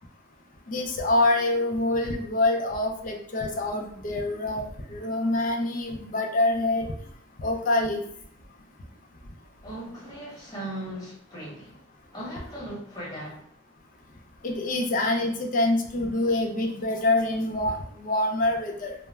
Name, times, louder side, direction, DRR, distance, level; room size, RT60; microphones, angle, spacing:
voice 1, 0.7-6.9 7.4-8.0 14.4-18.9, left 2 dB, 45° left, 3 dB, 0.4 m, -26 dB
voice 2, 9.6-11.8 12.1-13.5, right 1 dB, 20° left, -7 dB, 1.1 m, -38 dB
2.2 x 2.0 x 3.1 m, 0.63 s
head